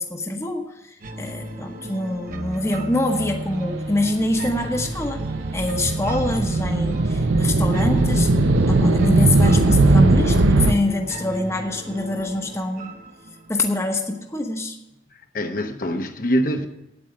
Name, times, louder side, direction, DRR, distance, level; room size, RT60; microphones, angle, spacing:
voice 1, 0.0-5.2 5.5-8.3 8.7-12.9 13.5-14.8, left 2 dB, 15° left, 4 dB, 1.0 m, -25 dB
sound 1, 1.0-14.0, right 2 dB, 50° right, 1.0 m, -34 dB
sound 2, 4.2-10.7, right 2 dB, 85° right, 0.7 m, -18 dB
voice 2, 15.1-16.7, equal, 50° left, 5 dB, 1.0 m, -24 dB
9.1 x 8.8 x 7.4 m, 0.96 s
head